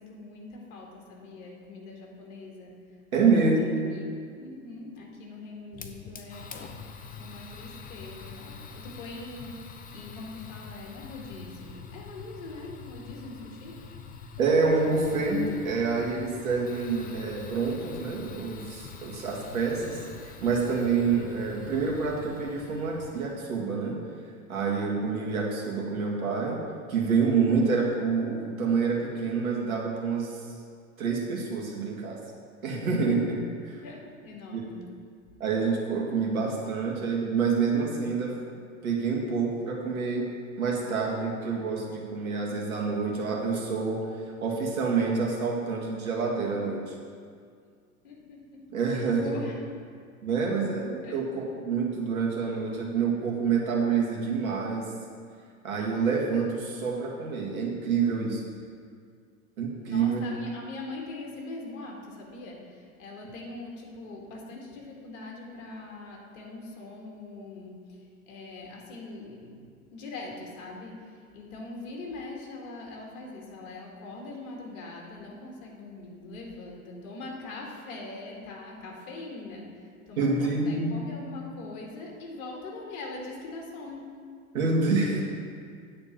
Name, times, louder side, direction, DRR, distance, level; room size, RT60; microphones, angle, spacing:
voice 1, 0.0-6.7 7.2-13.9 33.8-35.0 48.0-49.6 51.0-51.2 59.8-84.1, left 3 dB, 60° left, -1 dB, 2.1 m, -42 dB
voice 2, 3.1-3.8 14.4-24.0 24.5-26.6 26.9-30.4 31.0-32.2 32.6-33.4 33.6-33.8 35.4-38.4 38.8-40.3 40.6-44.0 44.4-46.9 48.7-49.3 50.2-54.9 55.6-58.4 59.6-60.2 80.2-81.0 84.5-85.2, right 4 dB, 75° right, -2 dB, 1.9 m, -27 dB
Fire, 5.7-23.3, left 5 dB, 20° left, 0.6 m, -45 dB
8.9 x 4.4 x 7.3 m, 2.1 s
hypercardioid pair, 90°, 43 cm